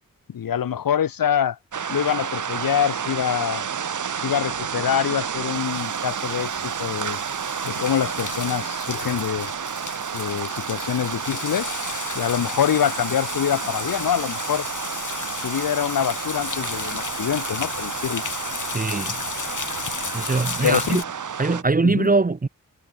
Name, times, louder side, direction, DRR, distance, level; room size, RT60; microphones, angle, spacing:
voice 1, 0.3-1.6 1.9-3.7 4.2-7.2 7.6-9.5 10.1-11.7 12.1-14.7 15.4-18.2 20.6-21.0 21.8-22.1, left 9 dB, 75° left, 0.9 m, -25 dB
sound 1, 1.7-21.6, right 7 dB, 60° right, 1.1 m, -31 dB
sound 2, 5.4-21.0, left 5 dB, 60° left, 3.4 m, -34 dB
voice 2, 18.7-19.2 20.1-21.0 21.4-22.5, right 3 dB, 25° right, 0.9 m, -21 dB
wide cardioid pair, 80°, 34 cm